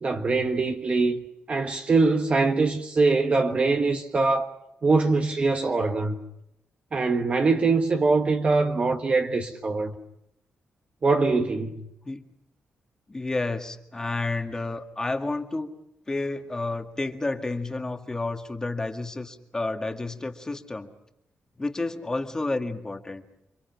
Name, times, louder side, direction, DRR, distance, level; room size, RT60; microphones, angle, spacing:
voice 1, 0.0-1.2 1.5-4.5 4.8-6.2 6.9-9.9 11.0-11.8, right 3 dB, 30° right, 1.4 m, -23 dB
voice 2, 13.1-15.7 16.1-20.9 21.6-23.2, left 2 dB, 15° left, 1.9 m, -30 dB
29.5 x 25.0 x 5.9 m
wide cardioid pair, 150°, 4 cm